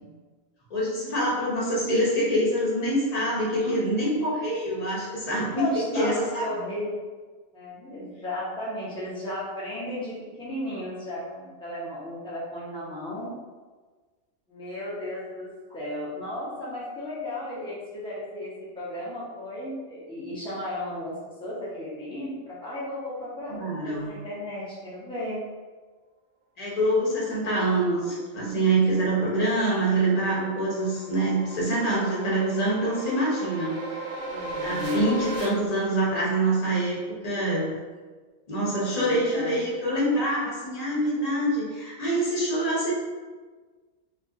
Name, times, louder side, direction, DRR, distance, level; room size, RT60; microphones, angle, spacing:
voice 1, 0.7-6.5 23.5-24.1 26.6-33.8 34.6-37.7 38.5-42.9, right 1 dB, 35° left, -6 dB, 0.8 m, -25 dB
voice 2, 5.3-7.0 7.5-13.3 14.5-25.4 34.2-35.2 38.9-39.6, left 1 dB, 5° left, -8 dB, 0.6 m, -34 dB
sound 1, 28.9-35.5, right 2 dB, 70° right, 0.9 m, -37 dB
2.7 x 2.5 x 3.6 m, 1.4 s
omnidirectional pair, 1.4 m